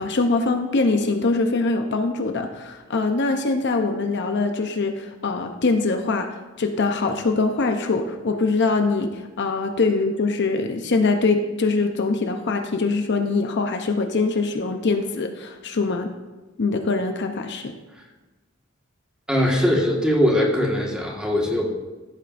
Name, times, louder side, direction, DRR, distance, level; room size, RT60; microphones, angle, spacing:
voice 1, 0.0-6.3 6.6-9.1 9.4-16.1 16.6-17.7, left 3 dB, 55° left, 5 dB, 0.7 m, -23 dB
voice 2, 19.3-21.7, equal, 5° right, -2 dB, 1.6 m, -21 dB
15.0 x 8.3 x 2.6 m, 1.2 s
head